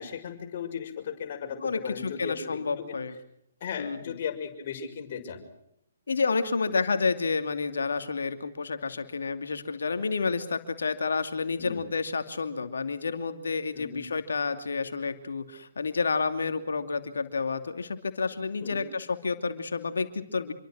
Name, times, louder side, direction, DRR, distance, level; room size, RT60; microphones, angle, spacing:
voice 1, 0.0-3.0 3.6-5.4 11.6-11.8 13.7-14.0 18.6-18.9, left 7 dB, 45° left, 4 dB, 6.3 m, -36 dB
voice 2, 1.6-3.1 3.8-4.1 6.1-20.5, left 4 dB, 70° left, 9 dB, 2.7 m, -30 dB
27.5 x 24.0 x 6.3 m, 0.77 s
figure-of-eight pair, 130°, 0 cm